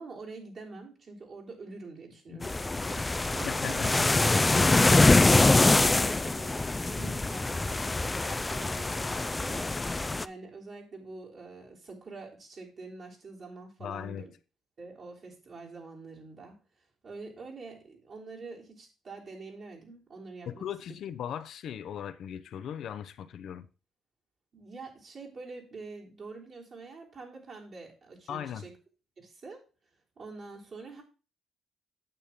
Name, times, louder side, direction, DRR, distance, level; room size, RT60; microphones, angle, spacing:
voice 1, 0.0-6.5 6.9-9.7 10.2-14.3 14.8-16.6 17.0-20.7 24.5-28.7 29.2-29.6 30.2-31.0, right 3 dB, 50° right, 3.4 m, -45 dB
sound 1, 2.4-10.2, left 2 dB, 20° left, 0.3 m, -24 dB
voice 2, 3.5-4.1 13.8-14.2 20.5-23.7 28.3-28.7, left 9 dB, 70° left, 0.6 m, -38 dB
8.9 x 7.2 x 3.6 m
cardioid pair, 90°, 0 cm